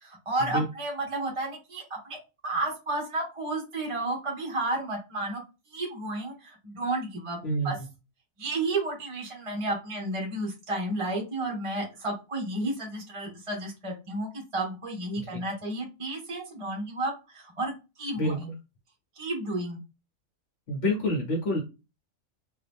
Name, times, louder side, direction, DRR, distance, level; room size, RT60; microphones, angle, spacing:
voice 1, 0.0-2.2 2.4-5.4 5.7-7.4 7.6-7.8 8.4-17.7 18.0-18.5 19.2-19.8, right 2 dB, 25° right, -1 dB, 1.0 m, -32 dB
voice 2, 20.7-21.6, left 1 dB, 55° left, -1 dB, 1.2 m, -27 dB
2.8 x 2.7 x 3.4 m, 0.28 s
omnidirectional pair, 1.4 m